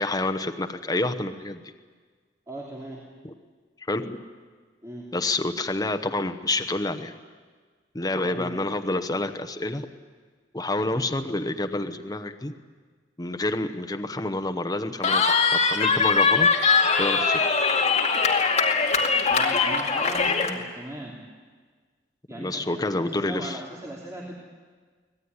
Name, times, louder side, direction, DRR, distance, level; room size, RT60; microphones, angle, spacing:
voice 1, 0.0-1.6 3.2-3.3 3.9-4.2 5.1-7.2 7.9-9.8 10.5-12.5 13.2-16.5 17.0-17.5 22.3-23.6, left 2 dB, 20° left, 6 dB, 1.0 m, -28 dB
voice 2, 2.5-3.0 4.8-5.1 8.2-8.5 19.3-21.2 22.3-24.4, right 1 dB, 20° right, -3 dB, 3.1 m, -38 dB
Cheering, 15.0-20.5, left 4 dB, 40° left, 2.3 m, -21 dB
24.5 x 18.5 x 9.8 m, 1.5 s
head